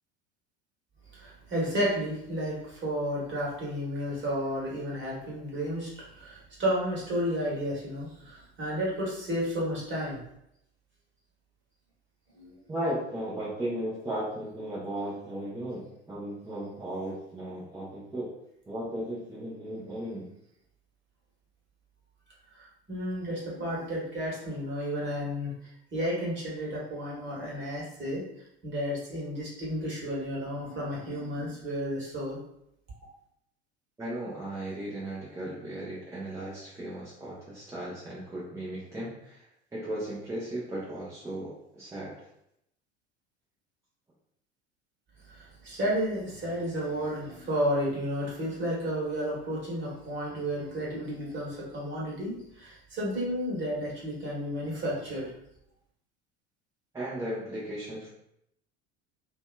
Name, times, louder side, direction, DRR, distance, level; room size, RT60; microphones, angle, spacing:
voice 1, 1.1-5.9 6.1-10.2 12.3-12.6 22.5-25.5 25.9-28.2 28.6-32.4 45.3-55.3, equal, 35° right, -5 dB, 1.2 m, -32 dB
voice 2, 12.7-15.8 16.1-18.2 18.7-20.2 34.0-39.4 39.7-42.1 56.9-58.1, right 1 dB, 10° right, -8 dB, 0.6 m, -36 dB
2.7 x 2.2 x 2.2 m, 0.77 s
figure-of-eight pair, 65°, 33 cm